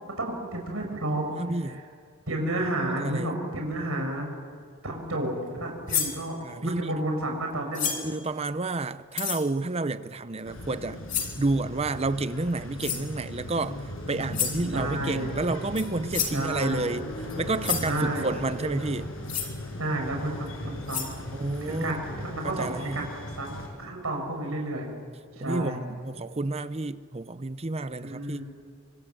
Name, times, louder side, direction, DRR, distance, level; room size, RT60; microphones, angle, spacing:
voice 1, 0.2-1.3 1.6-1.8 2.3-4.3 4.8-6.3 6.6-7.9 14.7-15.3 16.3-16.8 17.8-18.3 19.8-21.2 21.6-24.9 25.4-25.8 28.0-28.4, right 1 dB, 85° right, 6.2 m, -31 dB
voice 2, 1.4-1.8 3.0-3.3 6.4-7.0 8.0-11.0 11.4-17.1 17.4-19.1 21.3-22.0 22.4-23.0 25.4-28.4, right 2 dB, 30° right, 0.7 m, -30 dB
sound 1, 5.9-6.2 7.7-8.1 9.1-9.4 11.1-11.4 12.8-13.1 14.3-14.6 15.7-15.8 16.1-16.4 17.3-17.4 17.6-17.9 19.3-19.5 20.5-20.6 20.9-21.1, left 8 dB, 40° left, 3.2 m, -29 dB
sound 2, 10.4-23.7, left 1 dB, 80° left, 6.0 m, -38 dB
27.0 x 25.5 x 7.8 m
head